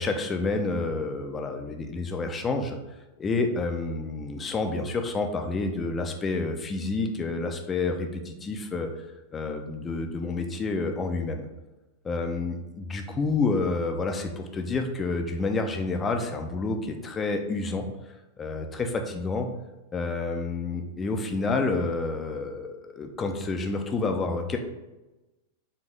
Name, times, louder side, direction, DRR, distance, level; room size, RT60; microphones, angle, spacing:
voice 1, 0.0-2.8 3.2-8.9 9.3-11.5 12.0-17.9 18.4-19.5 19.9-24.6, left 3 dB, 20° left, 4 dB, 0.5 m, -29 dB
4.3 x 2.8 x 3.3 m, 1.0 s
figure-of-eight pair, 90°, 0 cm